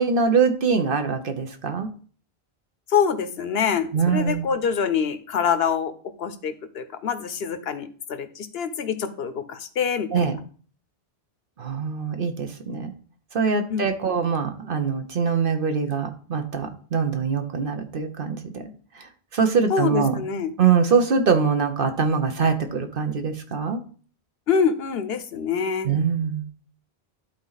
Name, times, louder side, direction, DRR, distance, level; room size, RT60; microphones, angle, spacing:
voice 1, 0.0-1.9 3.9-4.4 10.1-10.3 11.6-12.9 13.3-18.7 19.0-19.1 19.3-20.2 20.6-23.8 25.8-26.4, right 5 dB, 60° right, 6 dB, 1.1 m, -23 dB
voice 2, 2.9-5.9 6.2-10.3 13.7-14.1 19.7-20.5 24.5-25.9, left 7 dB, 70° left, 11 dB, 1.0 m, -25 dB
11.5 x 4.2 x 4.0 m, 0.43 s
omnidirectional pair, 1.1 m